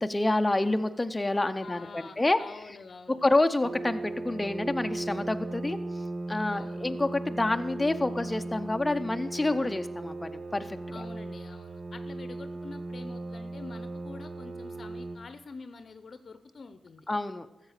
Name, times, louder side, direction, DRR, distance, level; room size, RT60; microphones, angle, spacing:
voice 1, 0.0-2.4 3.2-5.8 6.3-11.1 17.1-17.5, left 2 dB, 20° left, 7 dB, 0.6 m, -28 dB
voice 2, 1.6-3.3 6.5-6.9 10.9-17.1, left 4 dB, 55° left, 10 dB, 0.7 m, -46 dB
sound 1, 3.6-15.2, right 2 dB, 45° right, 1.5 m, -37 dB
14.0 x 7.4 x 6.5 m, 0.97 s
cardioid pair, 70°, 0 cm